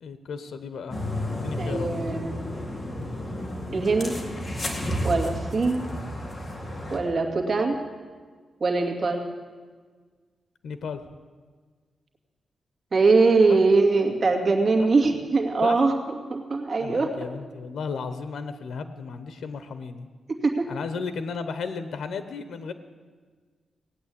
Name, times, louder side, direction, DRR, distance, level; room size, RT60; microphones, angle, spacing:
voice 1, 0.0-1.0 1.3-1.9 10.6-11.0 13.5-13.6 14.8-14.9 15.6-15.8 16.8-20.1 20.7-22.7, left 5 dB, 85° left, 10 dB, 0.9 m, -34 dB
sound 1, 0.9-7.0, left 1 dB, 25° left, 2.3 m, -32 dB
voice 2, 1.6-2.4 3.7-4.1 5.0-5.8 6.9-7.8 8.6-9.2 12.9-15.9 16.3-17.1 20.4-20.7, right 3 dB, 40° right, 2 dB, 2.3 m, -22 dB
18.0 x 8.8 x 8.6 m, 1.5 s
wide cardioid pair, 130°, 0 cm